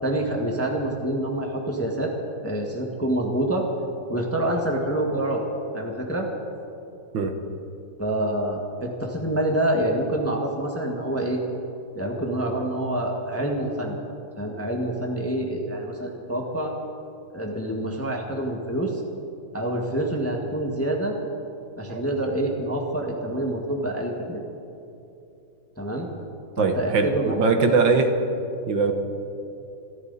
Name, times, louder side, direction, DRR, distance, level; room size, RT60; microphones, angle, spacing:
voice 1, 0.0-2.1 2.4-3.7 4.1-5.4 5.7-6.3 8.0-11.4 11.9-14.0 14.4-16.7 17.3-19.0 19.5-21.2 21.8-24.4 25.8-26.1 26.6-27.7, right 1 dB, 10° left, 0 dB, 1.3 m, -27 dB
voice 2, 26.6-28.1 28.7-28.9, right 4 dB, 65° right, 6 dB, 1.7 m, -21 dB
26.5 x 13.0 x 4.1 m, 2.8 s
omnidirectional pair, 2.3 m